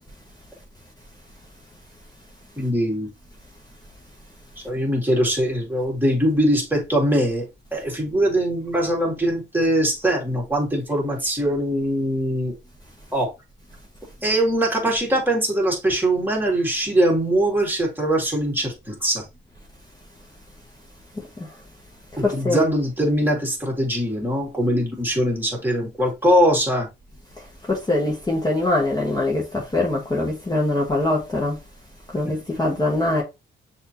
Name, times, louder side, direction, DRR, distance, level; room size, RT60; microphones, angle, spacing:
voice 1, 2.6-3.1 4.6-7.5 7.7-12.5 13.1-13.3 14.2-19.2 22.2-26.9 32.2-32.3, right 1 dB, 10° right, 2.2 m, -22 dB
voice 2, 22.2-22.7 27.7-31.6 32.1-33.2, left 2 dB, 20° left, 1.3 m, -23 dB
6.3 x 2.9 x 2.8 m
cardioid pair, 90°, 20 cm